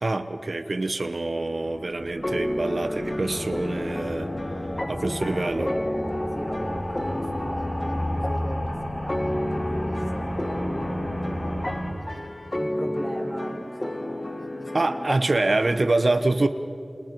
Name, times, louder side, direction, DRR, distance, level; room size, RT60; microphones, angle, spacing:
voice 1, 0.0-4.3 4.9-5.7 14.7-16.5, right 2 dB, 75° right, 9 dB, 1.0 m, -25 dB
sound 1, 1.2-11.9, equal, 50° left, 5.8 m, -32 dB
sound 2, 2.2-15.9, left 1 dB, 35° left, 1.8 m, -32 dB
voice 2, 5.0-11.9 12.1-12.2 12.6-15.3, equal, 10° left, -1 dB, 6.6 m, -37 dB
29.0 x 28.0 x 4.7 m, 2.8 s
wide cardioid pair, 45°, 0 cm